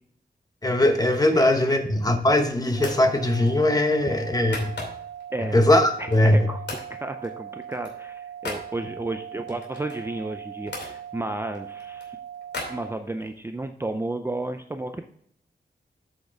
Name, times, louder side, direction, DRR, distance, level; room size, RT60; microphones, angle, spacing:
voice 1, 0.6-4.8 5.4-6.4, left 1 dB, 20° left, 5 dB, 1.1 m, -20 dB
sound 1, 1.8-2.3 2.8-3.1 3.5-5.2 5.7-6.4 6.7-6.9 7.2-8.7 9.5-10.9 11.5-13.4, left 3 dB, 85° left, 2.6 m, -39 dB
sound 2, 2.8-12.9, right 9 dB, 65° right, 1.9 m, -40 dB
voice 2, 6.0-12.2 12.7-15.0, right 2 dB, 15° right, 6 dB, 0.4 m, -33 dB
8.1 x 6.4 x 3.5 m, 0.66 s
wide cardioid pair, 140°, 17 cm